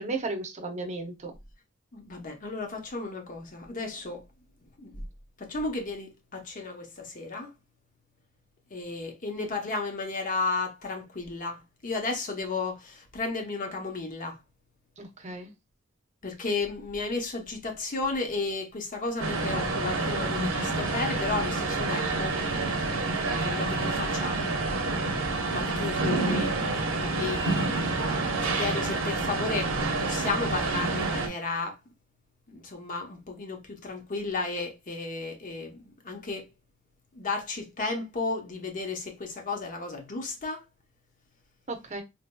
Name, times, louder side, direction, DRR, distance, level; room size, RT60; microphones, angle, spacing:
voice 1, 0.0-1.3 15.0-15.5 41.7-42.0, right 3 dB, 35° right, 0.7 m, -34 dB
voice 2, 1.9-4.2 4.8-4.9 5.4-7.5 8.7-14.4 16.2-22.8 23.3-24.4 25.5-27.5 28.0-31.8 32.5-36.5 37.1-40.6, left 3 dB, 40° left, 0.8 m, -33 dB
sound 1, 19.2-31.3, right 3 dB, 80° right, 0.8 m, -28 dB
4.0 x 2.7 x 2.2 m
head